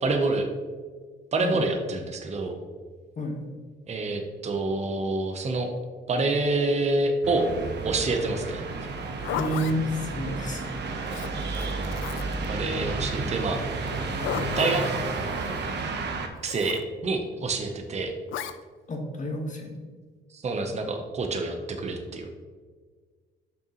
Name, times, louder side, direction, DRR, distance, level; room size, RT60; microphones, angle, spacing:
voice 1, 0.0-0.5 1.3-2.6 3.9-5.7 6.1-7.5 7.8-8.6 12.5-13.6 14.6-14.8 16.4-18.1 20.3-22.3, right 3 dB, 35° right, 4 dB, 0.8 m, -27 dB
sound 1, 7.2-16.3, right 3 dB, 60° right, 0.9 m, -31 dB
Zipper (clothing), 8.9-9.8 11.1-12.5 13.9-14.9 16.4-16.8 18.3-18.6, left 9 dB, 75° left, 0.4 m, -34 dB
voice 2, 9.3-10.8 18.9-19.9, equal, 40° left, 2 dB, 1.3 m, -31 dB
6.5 x 5.6 x 3.0 m, 1.5 s
cardioid pair, 90°, 20 cm